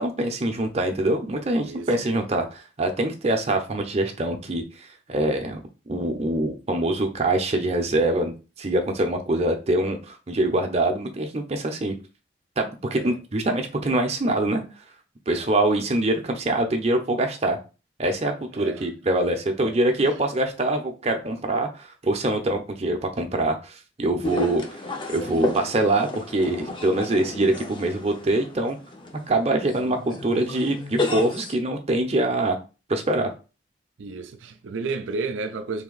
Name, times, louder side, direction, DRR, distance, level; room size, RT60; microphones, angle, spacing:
voice 1, 0.0-5.6 5.9-11.9 12.6-14.6 15.3-17.6 18.0-24.8 25.1-28.8 29.3-32.6 32.9-33.3, right 1 dB, 35° right, 0.6 m, -24 dB
voice 2, 1.6-1.9 12.9-13.2 15.3-15.5 18.5-18.9 19.6-19.8 20.0-20.2 30.1-30.2 34.0-35.8, right 4 dB, 85° right, 0.4 m, -33 dB
sound 1, 24.2-31.5, left 2 dB, 25° left, 0.6 m, -32 dB
3.4 x 2.7 x 3.9 m
head